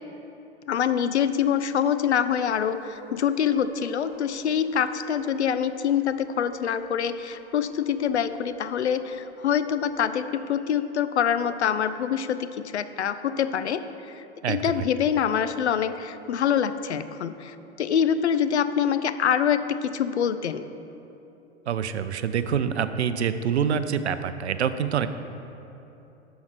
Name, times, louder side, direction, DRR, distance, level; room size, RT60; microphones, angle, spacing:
voice 1, 0.7-20.7, left 8 dB, 75° left, 12 dB, 0.5 m, -25 dB
sound 1, 2.2-10.4, right 1 dB, 5° right, 1.3 m, -48 dB
voice 2, 21.7-25.1, right 7 dB, 75° right, 12 dB, 0.5 m, -26 dB
12.5 x 4.6 x 4.6 m, 2.9 s
figure-of-eight pair, 90°, 34 cm